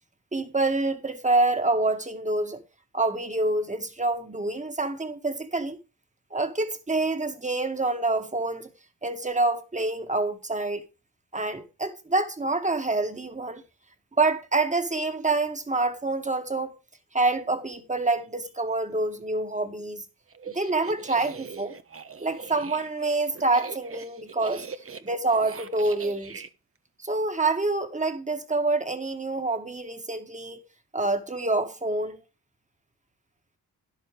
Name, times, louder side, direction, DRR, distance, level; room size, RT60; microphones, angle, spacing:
voice 1, 0.3-2.6 2.9-5.8 6.3-8.7 9.0-10.9 11.3-13.6 14.2-16.7 17.1-20.0 20.5-21.8 22.2-24.7 25.0-26.4 27.0-30.6 30.9-32.2, right 2 dB, 20° right, 1.9 m, -27 dB
sound 1, 20.3-26.5, right 5 dB, 35° right, 1.1 m, -41 dB
12.5 x 11.0 x 3.3 m
cardioid pair, 85°, 38 cm